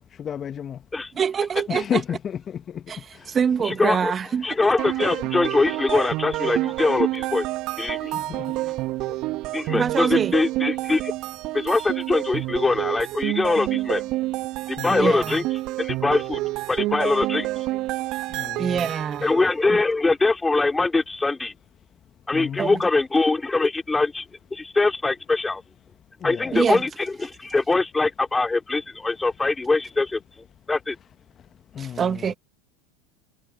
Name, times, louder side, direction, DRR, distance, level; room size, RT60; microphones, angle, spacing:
voice 1, 0.0-0.8 1.7-2.8 8.1-8.6 14.8-15.1 18.3-18.9 22.3-22.8 26.2-26.6 31.7-32.3, left 8 dB, 35° left, 1.5 m, -32 dB
voice 2, 1.2-2.0 2.9-3.0 3.3-4.5 9.7-10.3 14.9-15.4 18.6-19.3 22.6-22.8 26.5-26.8 31.8-32.3, right 7 dB, 30° right, 2.1 m, -24 dB
voice 3, 3.6-4.1 4.4-7.5 7.8-8.1 9.5-11.1 11.5-14.0 14.7-15.4 15.8-16.4 16.7-17.5 19.2-21.5 22.3-24.2 24.5-25.6 26.2-30.2 30.7-31.0, left 3 dB, 15° left, 4.0 m, -23 dB
sound 1, 4.8-19.5, right 18 dB, 50° right, 2.2 m, -28 dB
hypercardioid pair, 85°, 0 cm